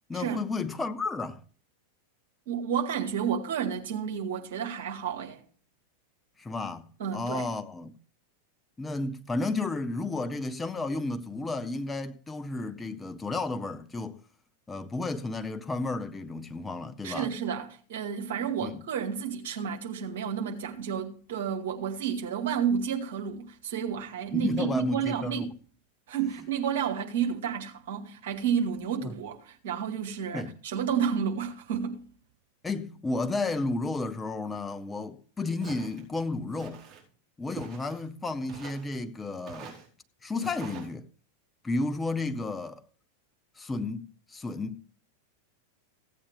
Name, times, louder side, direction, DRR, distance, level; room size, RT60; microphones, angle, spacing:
voice 1, 0.1-1.4 6.4-7.9 8.8-14.2 14.7-17.3 18.6-18.8 24.3-25.5 29.0-29.1 30.3-30.5 32.6-36.8 37.4-39.8 40.2-41.0 41.6-42.8 43.6-44.8, left 3 dB, 10° left, 0.8 m, -32 dB
voice 2, 2.5-5.4 7.0-7.5 17.0-25.5 26.1-32.0, right 7 dB, 55° right, 2.2 m, -31 dB
Walk footsteps, 35.6-36.0 36.6-37.0 37.6-38.1 38.5-38.9 39.5-39.9 40.4-40.9, right 8 dB, 20° right, 4.8 m, -45 dB
16.0 x 8.7 x 3.5 m
figure-of-eight pair, 90°, 0 cm